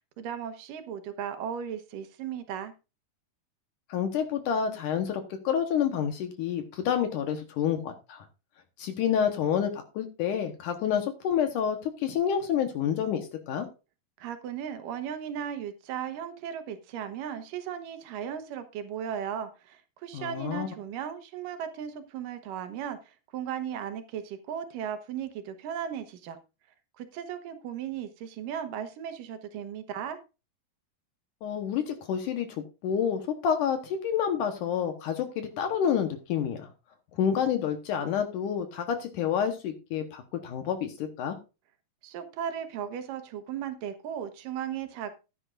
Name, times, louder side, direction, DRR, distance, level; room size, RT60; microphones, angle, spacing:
voice 1, 0.2-2.7 14.2-26.4 27.0-30.2 42.0-45.1, right 8 dB, 75° right, 9 dB, 2.6 m, -36 dB
voice 2, 3.9-8.3 8.8-13.7 20.1-20.7 31.4-32.5 32.8-36.7 37.1-41.4, left 8 dB, 70° left, 6 dB, 2.5 m, -28 dB
14.5 x 10.0 x 2.5 m, 0.29 s
omnidirectional pair, 3.9 m